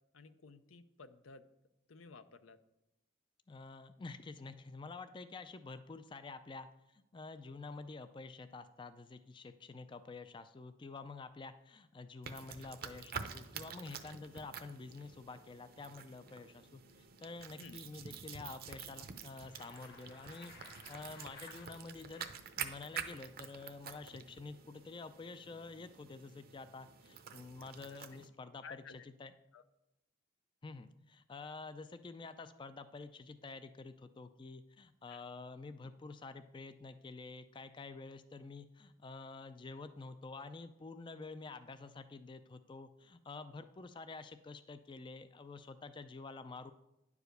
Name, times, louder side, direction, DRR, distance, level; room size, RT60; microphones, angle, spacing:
voice 1, 0.1-1.4 1.9-2.6 17.6-17.8 27.8-28.0 28.6-29.1 29.5-29.6 35.1-35.2, left 4 dB, 85° left, 11 dB, 0.6 m, -54 dB
voice 2, 3.5-22.3 22.6-29.3 30.6-46.7, left 3 dB, 25° left, 11 dB, 0.3 m, -49 dB
sound 1, 12.2-28.3, right 7 dB, 50° right, 0.7 m, -48 dB
Bicycle, 19.3-22.5, left 3 dB, 50° left, 1.4 m, -57 dB
10.0 x 4.8 x 6.6 m, 0.88 s
head